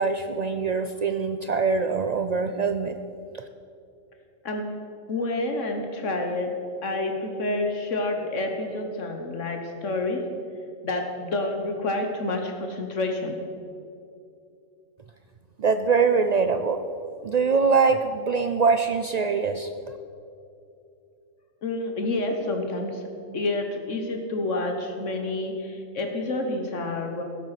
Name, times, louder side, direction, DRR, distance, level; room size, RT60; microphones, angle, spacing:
voice 1, 0.0-3.0 15.6-16.8 17.2-19.7, right 5 dB, 85° right, 8 dB, 0.3 m, -23 dB
voice 2, 5.1-6.5 6.8-10.2 10.8-13.4 21.6-23.0 23.3-27.2, left 2 dB, 70° left, 4 dB, 1.5 m, -28 dB
16.5 x 7.9 x 5.8 m, 2.6 s
omnidirectional pair, 1.3 m